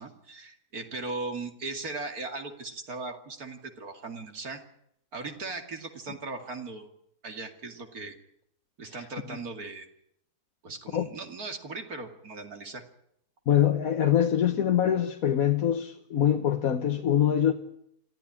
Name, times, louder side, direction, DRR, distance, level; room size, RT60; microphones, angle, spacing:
voice 1, 0.0-4.6 5.1-6.9 7.2-8.2 8.8-9.9 10.6-12.8, right 3 dB, 70° right, 2.9 m, -38 dB
voice 2, 9.0-9.4 10.9-11.1 13.5-17.5, left 10 dB, 65° left, 1.5 m, -24 dB
26.5 x 14.5 x 10.0 m
omnidirectional pair, 1.6 m